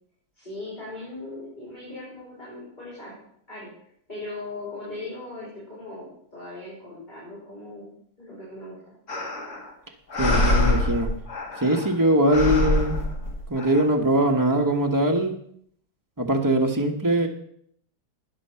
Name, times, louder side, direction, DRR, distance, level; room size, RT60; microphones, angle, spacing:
voice 1, 0.3-3.2 3.5-3.7 4.1-8.8, left 2 dB, 20° left, -8 dB, 5.3 m, -39 dB
sound 1, 9.1-9.7 10.1-11.9 12.3-13.8, left 1 dB, 50° left, 2.4 m, -25 dB
voice 2, 10.2-11.1 11.6-13.0 13.5-15.3 16.2-17.3, right 1 dB, 10° right, 2 dB, 1.0 m, -22 dB
12.5 x 9.7 x 5.7 m, 0.67 s
omnidirectional pair, 2.2 m